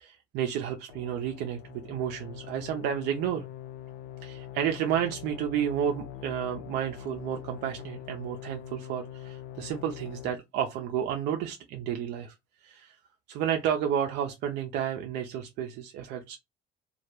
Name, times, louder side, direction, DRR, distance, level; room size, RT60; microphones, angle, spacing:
voice 1, 0.0-3.5 4.2-12.3 12.6-13.0 13.3-16.4, right 9 dB, 85° right, 0.4 m, -31 dB
sound 1, 0.9-10.3, left 10 dB, 90° left, 0.4 m, -43 dB
2.2 x 2.0 x 2.9 m
cardioid pair, 110°, 17 cm